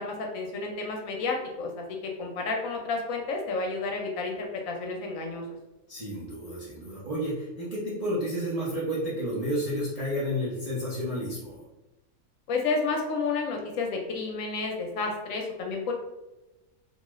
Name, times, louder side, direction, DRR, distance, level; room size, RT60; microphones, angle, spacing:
voice 1, 0.0-5.4 12.5-15.9, left 3 dB, 70° left, 1 dB, 0.9 m, -31 dB
voice 2, 5.9-11.6, equal, 50° right, -8 dB, 0.4 m, -31 dB
2.6 x 2.3 x 3.0 m, 1.0 s
omnidirectional pair, 1.6 m